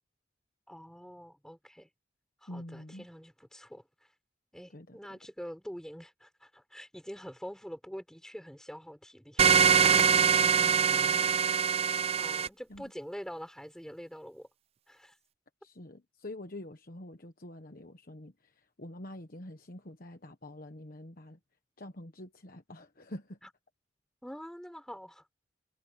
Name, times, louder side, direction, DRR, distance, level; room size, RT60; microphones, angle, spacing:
voice 1, 0.7-1.9 2.4-3.8 4.5-9.5 12.2-14.5 14.9-15.1 24.2-25.2, equal, 5° left, 6.8 m, -45 dB
voice 2, 2.5-3.1 4.7-5.2 9.9-11.3 12.7-12.9 15.6-21.4 21.8-23.4, left 1 dB, 50° left, 1.3 m, -46 dB
sound 1, 9.4-12.5, right 7 dB, 35° right, 0.4 m, -23 dB
head